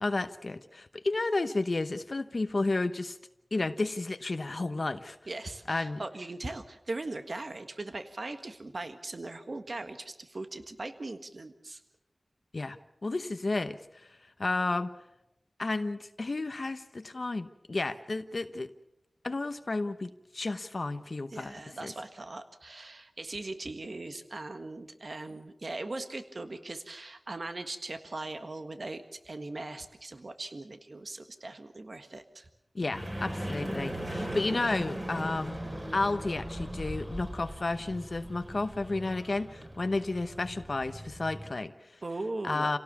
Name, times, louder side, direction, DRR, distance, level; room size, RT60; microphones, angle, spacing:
voice 1, 0.0-3.2 3.5-5.2 5.7-6.0 12.5-14.9 15.6-18.7 19.2-21.9 32.7-35.6 35.9-41.9 42.4-42.8, left 2 dB, 60° left, 9 dB, 0.9 m, -32 dB
voice 2, 5.3-11.8 17.8-17.9 21.3-32.5 42.0-42.7, right 2 dB, 65° right, 8 dB, 1.6 m, -40 dB
sound 1, 32.9-41.5, right 1 dB, 25° right, 4.9 m, -39 dB
27.5 x 17.5 x 7.1 m, 0.88 s
wide cardioid pair, 60°, 0 cm